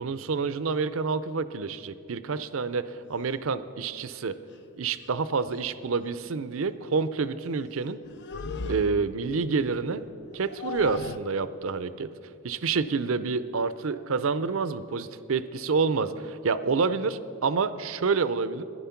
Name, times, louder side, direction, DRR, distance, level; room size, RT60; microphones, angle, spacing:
voice 1, 0.0-4.3 4.8-8.0 8.7-10.0 10.3-12.1 12.4-18.6, right 4 dB, 70° right, 14 dB, 0.5 m, -28 dB
sound 1, 3.1-3.3 4.5-4.6 5.0-5.2 5.5-5.7 8.0-9.3 10.3-11.2, left 4 dB, 55° left, 0.5 m, -36 dB
14.0 x 10.5 x 5.8 m, 2.6 s
head